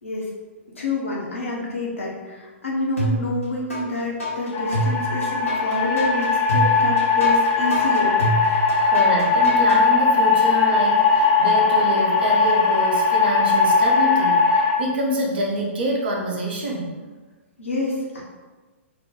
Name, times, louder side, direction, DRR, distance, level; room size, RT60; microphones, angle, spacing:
voice 1, 0.7-8.2 8.4-8.9 17.6-18.2, left 2 dB, 75° left, -3 dB, 0.9 m, -28 dB
sound 1, 3.0-3.8 4.2-9.8, equal, 90° left, 1.3 m, -26 dB
sound 2, 4.5-14.8, left 4 dB, 25° left, 0.3 m, -19 dB
voice 2, 8.9-16.9, equal, 50° right, -1 dB, 0.8 m, -26 dB
3.2 x 2.2 x 3.8 m, 1.3 s
figure-of-eight pair, 115°, 7 cm